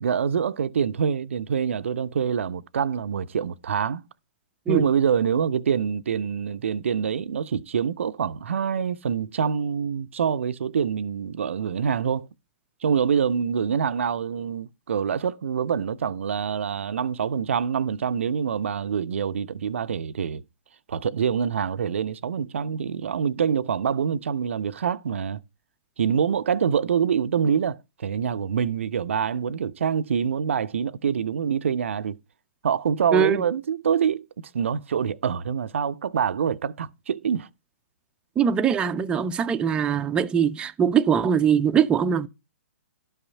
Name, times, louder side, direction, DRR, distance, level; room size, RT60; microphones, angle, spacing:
voice 1, 0.0-4.0 4.7-12.3 12.8-20.4 20.9-25.4 26.0-32.2 32.6-34.2 34.5-37.5, right 7 dB, 65° right, 0.6 m, -25 dB
voice 2, 33.1-33.4 38.4-42.3, right 7 dB, 15° right, 0.5 m, -22 dB
12.0 x 5.7 x 5.4 m
figure-of-eight pair, 125°, 7 cm